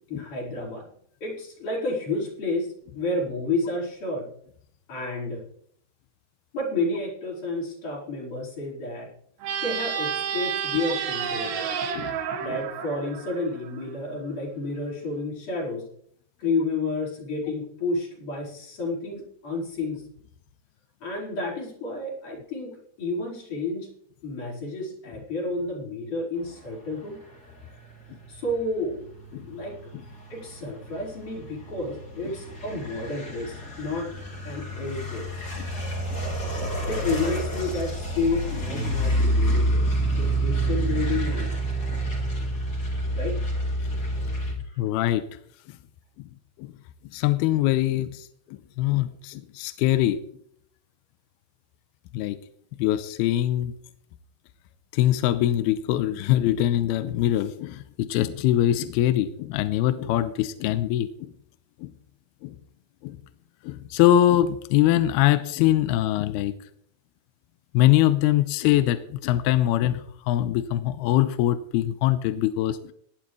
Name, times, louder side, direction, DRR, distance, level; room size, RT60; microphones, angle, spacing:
voice 1, 0.1-0.9 1.2-4.3 4.9-5.4 6.5-9.1 9.6-11.7 12.4-15.9 16.4-20.1 21.0-23.9 24.2-27.2 28.3-29.0 29.5-29.8 30.3-34.1 34.4-35.3 36.9-39.9 40.2-41.6 43.2-43.4 44.6-44.8, left 2 dB, 50° left, -2 dB, 6.3 m, -30 dB
sound 1, 9.4-13.9, right 7 dB, 85° right, 3.8 m, -30 dB
sound 2, 28.0-44.5, right 1 dB, 30° left, 3.9 m, -28 dB
voice 2, 44.8-45.2 46.6-46.7 47.1-50.2 52.1-52.4 52.8-53.7 54.9-61.3 61.8-61.9 62.4-62.6 63.0-63.2 63.6-66.5 67.7-72.9, left 13 dB, 85° left, 12 dB, 2.6 m, -23 dB
18.5 x 12.0 x 3.2 m, 0.64 s
omnidirectional pair, 4.6 m